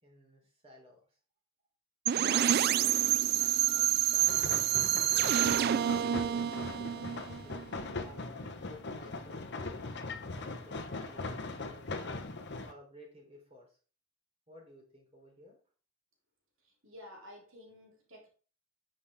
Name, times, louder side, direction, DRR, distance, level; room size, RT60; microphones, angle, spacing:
voice 1, 0.0-1.0 2.2-2.8 3.4-4.6 5.1-5.3 5.6-7.6 7.9-9.5 9.9-12.1 12.5-13.8 14.5-15.6, left 1 dB, 30° right, -1 dB, 3.7 m, -55 dB
sound 1, 2.1-7.9, right 11 dB, 45° right, 0.3 m, -28 dB
sound 2, 4.2-12.7, left 3 dB, 55° left, 1.0 m, -40 dB
voice 2, 16.6-18.3, left 1 dB, 65° right, -1 dB, 3.5 m, -52 dB
9.8 x 6.5 x 3.7 m, 0.39 s
head